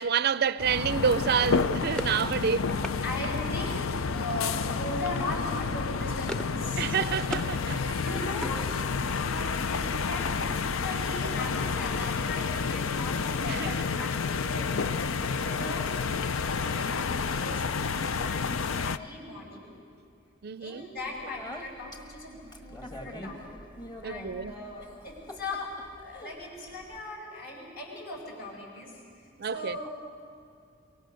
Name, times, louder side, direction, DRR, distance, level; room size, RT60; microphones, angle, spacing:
voice 1, 0.0-2.8 6.8-8.0 13.5-14.0 20.4-20.9 24.0-24.5 29.4-29.8, right 7 dB, 50° right, 0.4 m, -28 dB
sound 1, 0.6-19.0, left 5 dB, 85° left, 0.6 m, -30 dB
sound 2, 1.6-3.0 4.3-4.7 5.0-5.2 5.6-6.6 6.9-7.5 7.9-9.2, equal, 5° left, 0.6 m, -40 dB
voice 2, 3.0-7.1 7.6-8.6 8.9-15.9 16.3-19.7 20.6-23.6 24.0-29.9, left 2 dB, 55° left, 5.7 m, -39 dB
Speech, 21.0-27.0, left 1 dB, 20° left, 1.7 m, -45 dB
24.0 x 23.5 x 6.4 m
head